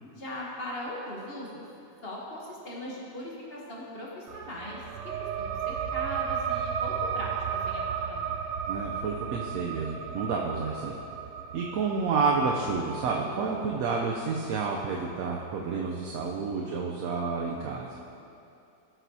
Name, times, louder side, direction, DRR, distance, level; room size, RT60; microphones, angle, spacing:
voice 1, 0.1-1.6 2.0-4.8 5.2-8.4, left 1 dB, 40° left, -4 dB, 1.1 m, -39 dB
sound 1, 4.3-15.4, right 7 dB, 90° right, 1.2 m, -34 dB
voice 2, 8.7-11.0 11.5-17.9, right 4 dB, 65° right, -1 dB, 1.0 m, -30 dB
13.5 x 6.2 x 2.7 m, 2.7 s
omnidirectional pair, 1.7 m